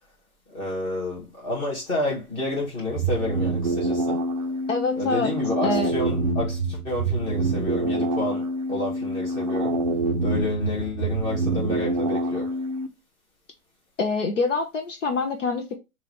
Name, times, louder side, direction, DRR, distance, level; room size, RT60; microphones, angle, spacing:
voice 1, 0.5-4.2 4.9-9.7 10.2-12.5, left 2 dB, 15° left, 1.7 m, -30 dB
sound 1, 2.9-12.9, right 2 dB, 30° right, 0.5 m, -26 dB
voice 2, 4.7-5.3 5.6-5.9 14.0-15.7, left 3 dB, 55° left, 1.1 m, -25 dB
5.4 x 2.9 x 3.2 m
hypercardioid pair, 170°, 44 cm